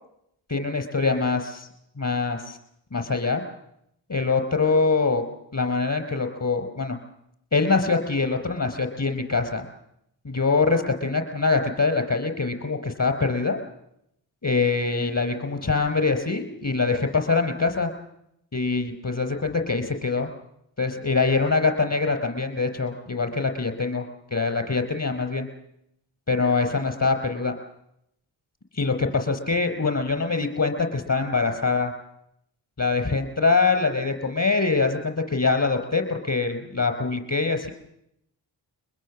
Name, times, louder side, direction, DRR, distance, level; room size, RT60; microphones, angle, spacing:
voice 1, 0.5-1.7 2.0-2.6 2.9-3.4 4.1-5.2 5.5-7.0 7.5-9.6 10.2-13.6 14.4-17.9 18.5-20.3 20.8-24.0 24.3-25.5 26.3-27.5 28.8-31.9 32.8-37.7, left 4 dB, 30° left, 7 dB, 4.8 m, -24 dB
23.0 x 21.0 x 7.5 m, 0.79 s
supercardioid pair, 40°, 48 cm